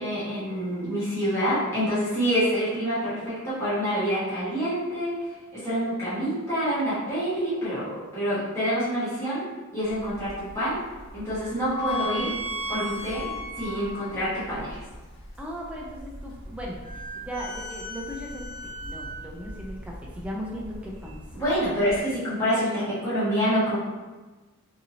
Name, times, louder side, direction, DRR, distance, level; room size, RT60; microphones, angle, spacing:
voice 1, 0.0-5.2 5.5-9.4 9.7-10.8 11.1-12.3 12.7-13.2 13.6-14.8 21.3-23.8, equal, 10° left, -13 dB, 1.1 m, -27 dB
sound 1, 9.9-22.0, left 1 dB, 60° left, 1.3 m, -37 dB
voice 2, 11.9-12.3 12.7-13.4 13.9-14.0 15.4-21.4, equal, 5° right, -3 dB, 0.3 m, -38 dB
2.7 x 2.6 x 2.7 m, 1.2 s
head